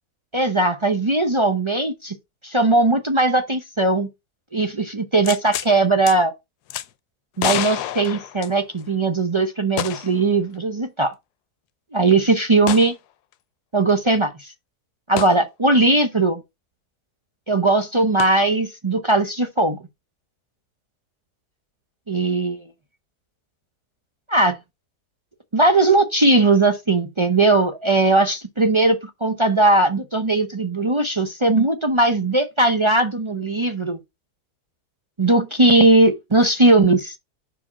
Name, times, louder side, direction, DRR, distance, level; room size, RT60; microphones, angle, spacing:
voice 1, 0.3-2.1 2.4-4.1 4.5-6.3 7.4-11.1 11.9-12.9 13.7-14.5 15.1-16.4 17.5-19.8 22.1-22.7 24.3-24.6 25.5-34.0 35.2-37.2, right 2 dB, 40° right, 0.4 m, -19 dB
sound 1, 5.2-5.7 6.1-6.2 6.7-6.9 7.4-8.9 9.8-10.2 10.5-10.6 12.7-12.9 15.2-15.4 18.2-18.3, left 12 dB, 80° left, 1.1 m, -28 dB
5.0 x 4.9 x 4.2 m
omnidirectional pair, 1.7 m